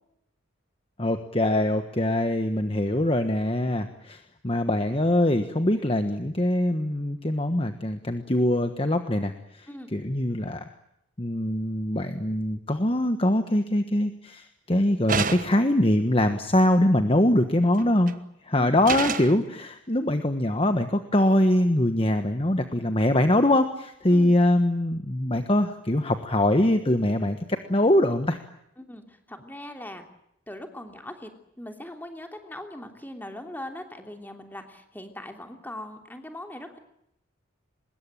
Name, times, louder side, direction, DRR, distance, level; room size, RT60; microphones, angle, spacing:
voice 1, 1.0-10.7 11.2-18.1 18.4-28.4, left 1 dB, 25° left, 8 dB, 1.4 m, -23 dB
Metal bang echo, 15.1-15.7 17.8-18.1 18.8-19.4, right 5 dB, 40° right, 1.3 m, -28 dB
voice 2, 28.8-30.1 30.5-36.8, left 1 dB, 10° left, 5 dB, 3.1 m, -40 dB
24.5 x 21.5 x 8.9 m, 0.76 s
head